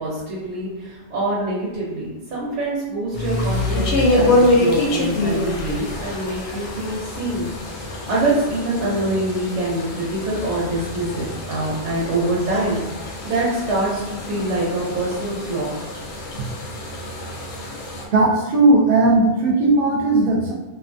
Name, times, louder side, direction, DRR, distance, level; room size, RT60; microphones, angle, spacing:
voice 1, 0.0-15.7, right 2 dB, 85° right, -6 dB, 1.0 m, -25 dB
sound 1, 3.1-18.1, left 1 dB, 90° left, 0.9 m, -25 dB
voice 2, 18.1-20.5, right 2 dB, 60° right, -1 dB, 0.8 m, -16 dB
2.6 x 2.4 x 2.5 m, 1.1 s
omnidirectional pair, 1.1 m